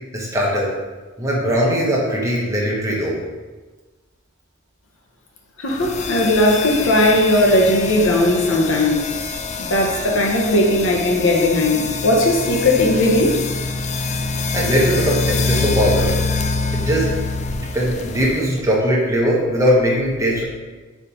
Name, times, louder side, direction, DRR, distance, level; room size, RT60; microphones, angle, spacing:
voice 1, 0.1-0.7 1.2-3.2 14.5-16.1 16.7-17.1 17.5-20.4, equal, 15° right, -4 dB, 1.3 m, -20 dB
voice 2, 5.6-9.1 9.6-13.4, left 1 dB, 70° left, 0 dB, 1.1 m, -17 dB
sound 1, 5.7-18.6, left 3 dB, 35° left, 0.4 m, -25 dB
5.3 x 4.9 x 4.2 m, 1.3 s
head